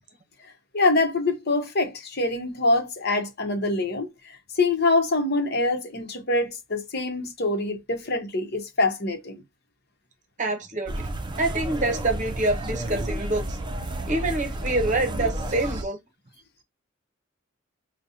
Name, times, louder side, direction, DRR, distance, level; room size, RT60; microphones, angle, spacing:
voice 1, 0.7-9.4, left 2 dB, 50° left, 1.0 m, -25 dB
voice 2, 10.4-11.0 11.4-13.6 14.1-16.0, right 2 dB, 40° right, 0.9 m, -26 dB
sound 1, 10.9-15.8, right 1 dB, 25° right, 0.5 m, -31 dB
5.2 x 2.2 x 2.7 m
head